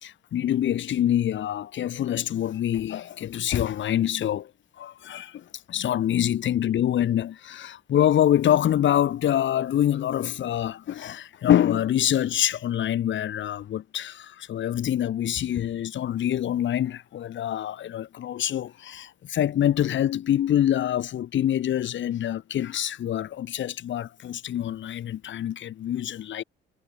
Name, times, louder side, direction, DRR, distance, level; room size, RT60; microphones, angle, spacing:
voice 1, 0.0-4.5 4.8-26.4, left 11 dB, 70° left, 5.2 m, -25 dB
cardioid pair, 90°, 20 cm